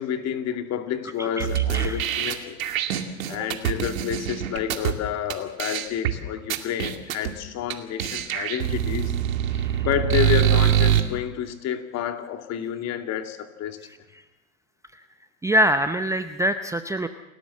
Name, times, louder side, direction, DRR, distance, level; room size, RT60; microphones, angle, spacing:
voice 1, 0.0-2.6 3.3-9.1 9.5-13.8, left 9 dB, 40° left, 6 dB, 2.6 m, -29 dB
voice 2, 1.2-2.0 3.3-3.5 9.6-9.8 15.4-17.1, equal, 5° right, 9 dB, 0.7 m, -25 dB
sound 1, 1.4-4.9 5.3-5.4 5.6-6.1 6.5-7.3 7.7-7.8 8.0-11.0, right 11 dB, 70° right, 2.5 m, -24 dB
29.0 x 13.0 x 7.5 m, 0.98 s
hypercardioid pair, 100°, 42 cm